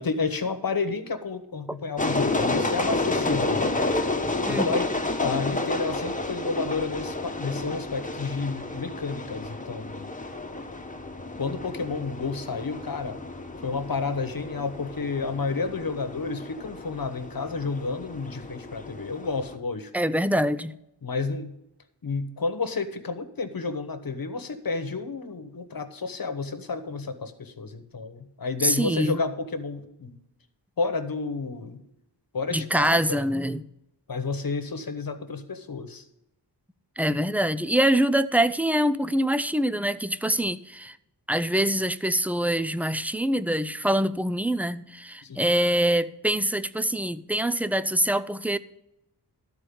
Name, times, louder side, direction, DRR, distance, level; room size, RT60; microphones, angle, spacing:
voice 1, 0.0-3.7 4.5-4.9 5.2-10.1 11.4-13.2 13.6-19.9 21.0-21.5 22.0-30.2 30.8-31.8 32.3-33.3 34.1-36.0 45.2-45.4, left 4 dB, 55° left, 1.2 m, -31 dB
sound 1, 2.0-19.6, left 2 dB, 20° left, 1.1 m, -31 dB
voice 2, 19.9-20.8 28.6-29.2 32.5-33.6 37.0-41.0 41.3-48.6, right 1 dB, 5° right, 0.4 m, -24 dB
13.0 x 4.5 x 8.6 m
wide cardioid pair, 75°, 42 cm